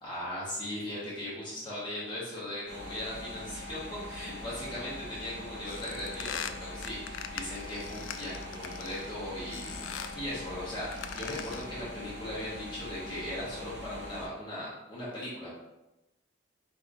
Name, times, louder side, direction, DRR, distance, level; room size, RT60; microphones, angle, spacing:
voice 1, 0.0-15.5, left 1 dB, 25° left, -9 dB, 1.4 m, -38 dB
sound 1, 2.7-14.3, left 1 dB, 65° right, 0.9 m, -43 dB
sound 2, 5.7-9.1 9.5-10.2 10.8-11.8, left 8 dB, 85° left, 0.3 m, -41 dB
4.6 x 3.4 x 2.7 m, 0.98 s
head